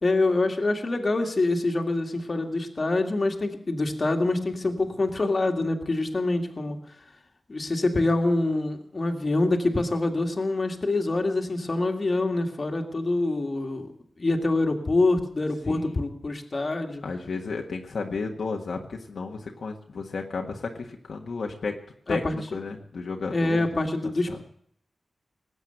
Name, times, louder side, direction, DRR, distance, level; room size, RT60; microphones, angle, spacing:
voice 1, 0.0-6.8 7.5-13.9 14.2-17.0 22.1-22.3 23.3-24.4, left 2 dB, 40° left, 3 dB, 2.0 m, -25 dB
voice 2, 15.6-16.0 17.0-21.8 22.1-23.7 24.0-24.4, left 4 dB, 75° left, 1 dB, 1.5 m, -33 dB
19.5 x 8.1 x 7.9 m, 0.66 s
wide cardioid pair, 85°, 0 cm